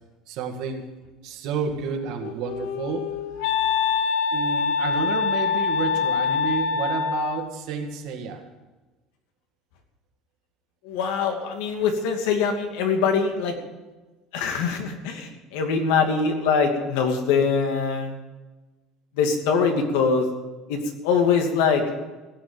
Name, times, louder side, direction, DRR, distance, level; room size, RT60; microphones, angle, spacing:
voice 1, 0.3-0.8 1.2-3.1 4.3-8.4, right 6 dB, 55° right, 4 dB, 2.0 m, -30 dB
Wind instrument woodwind instrument, 2.0-7.5, left 6 dB, 70° left, 0.9 m, -25 dB
voice 2, 10.8-13.5 14.3-18.2 19.2-20.3 20.7-21.8, left 5 dB, 85° left, 4 dB, 2.6 m, -23 dB
16.5 x 7.7 x 8.9 m, 1.2 s
cardioid pair, 175°, 0 cm